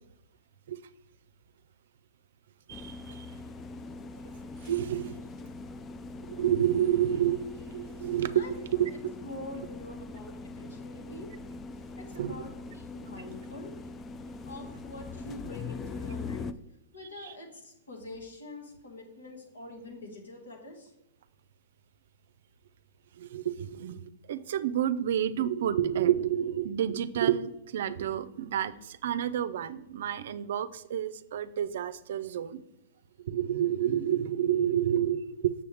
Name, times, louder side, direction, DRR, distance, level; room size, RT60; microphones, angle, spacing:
sound 1, 2.7-16.5, left 3 dB, 25° left, 0.4 m, -42 dB
voice 1, 2.7-3.3 4.6-5.2 6.2-7.4 7.7-8.9 12.2-12.4 17.2-17.3 23.1-32.6 33.2-35.5, right 10 dB, 65° right, 15 dB, 0.5 m, -29 dB
voice 2, 8.9-11.3 12.0-13.7 14.5-16.5 16.9-20.9, left 2 dB, 85° left, 0 dB, 2.1 m, -45 dB
6.9 x 6.9 x 3.5 m, 0.87 s
hypercardioid pair, 115°, 0 cm